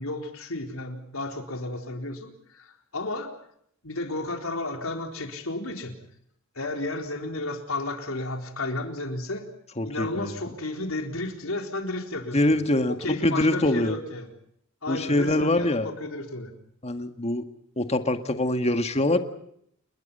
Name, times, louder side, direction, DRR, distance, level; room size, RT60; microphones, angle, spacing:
voice 1, 0.0-3.3 3.8-6.0 6.6-9.5 9.8-12.6 13.0-14.3 14.8-16.5, left 2 dB, 80° left, 4 dB, 4.1 m, -32 dB
voice 2, 9.8-10.4 12.3-13.9 14.9-15.9 16.8-17.5 17.8-19.2, left 1 dB, 30° left, 8 dB, 1.9 m, -24 dB
30.0 x 21.0 x 5.6 m, 0.70 s
head